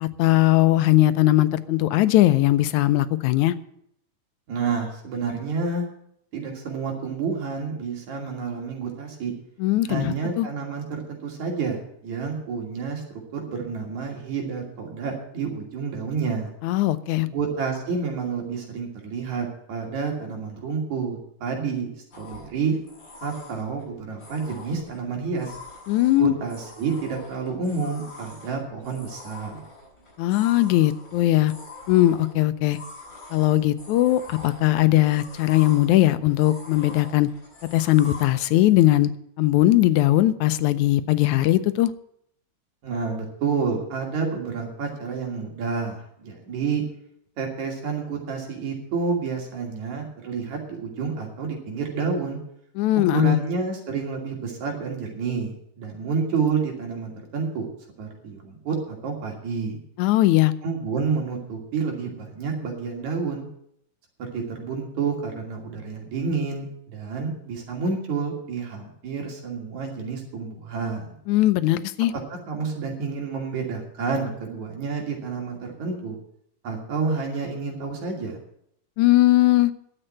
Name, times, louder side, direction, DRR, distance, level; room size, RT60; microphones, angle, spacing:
voice 1, 0.0-3.5 9.6-10.5 16.6-17.3 25.9-26.3 30.2-31.5 31.9-32.8 33.3-37.3 37.7-39.1 39.4-41.9 52.8-53.4 60.0-60.5 71.3-72.1 79.0-79.7, left 15 dB, 85° left, 2.1 m, -19 dB
voice 2, 4.5-5.8 6.3-9.3 9.8-16.5 17.3-21.9 22.2-22.8 23.2-25.6 26.1-29.6 42.8-46.8 47.4-52.4 53.1-57.7 58.0-59.8 60.6-63.5 64.2-71.2 72.5-76.2 76.6-78.4, right 5 dB, 75° right, 4.0 m, -29 dB
sound 1, 22.1-38.3, left 3 dB, 35° left, 7.3 m, -44 dB
11.0 x 7.8 x 8.7 m
omnidirectional pair, 3.4 m